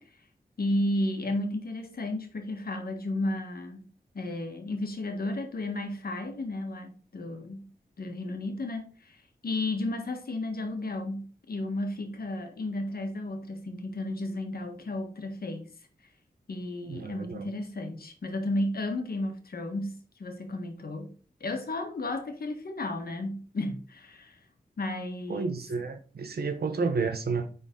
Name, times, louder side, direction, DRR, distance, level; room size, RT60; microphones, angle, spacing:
voice 1, 0.6-3.9 4.1-7.7 8.0-15.7 16.5-24.3 24.8-25.5, left 1 dB, 70° left, 1.5 m, -33 dB
voice 2, 16.9-17.5 25.3-27.5, right 4 dB, 80° right, 1.1 m, -31 dB
9.5 x 4.0 x 3.8 m
wide cardioid pair, 70°, 16 cm